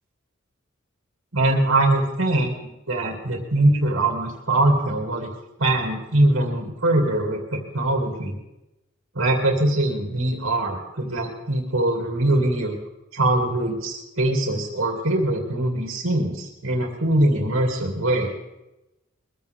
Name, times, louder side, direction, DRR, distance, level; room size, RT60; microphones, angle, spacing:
voice 1, 1.3-5.3 5.6-8.4 9.1-12.7 13.1-18.3, right 1 dB, 75° right, 0 dB, 2.5 m, -22 dB
22.0 x 15.0 x 3.5 m, 0.96 s
head